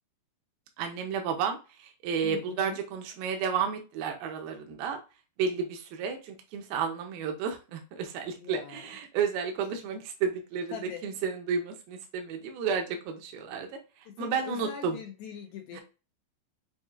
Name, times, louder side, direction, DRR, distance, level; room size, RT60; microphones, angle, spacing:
voice 1, 0.8-5.0 5.4-13.7 14.2-15.0 15.7-15.8, right 6 dB, 75° right, 4 dB, 2.4 m, -32 dB
voice 2, 2.2-2.8 8.4-9.0 10.7-11.1 14.1-15.8, left 7 dB, 85° left, 2 dB, 2.1 m, -42 dB
7.0 x 2.6 x 2.4 m, 0.32 s
omnidirectional pair, 4.7 m